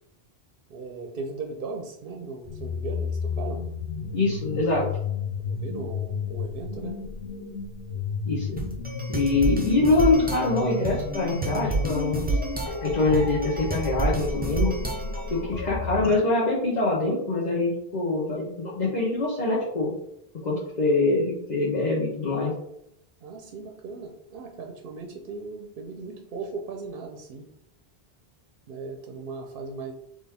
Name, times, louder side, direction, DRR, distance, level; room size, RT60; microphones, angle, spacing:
voice 1, 0.7-3.6 5.4-7.0 23.2-27.5 28.7-29.9, right 4 dB, 65° right, 2 dB, 0.8 m, -37 dB
sound 1, 2.4-16.2, left 4 dB, 75° left, 0.9 m, -33 dB
voice 2, 4.1-4.8 8.2-8.6 9.1-12.4 12.8-14.7 15.3-19.9 20.4-22.5, left 3 dB, 45° left, -5 dB, 1.0 m, -24 dB
sound 2, 8.6-15.4, right 2 dB, 10° right, 0.5 m, -30 dB
4.2 x 3.2 x 3.4 m, 0.76 s
omnidirectional pair, 1.1 m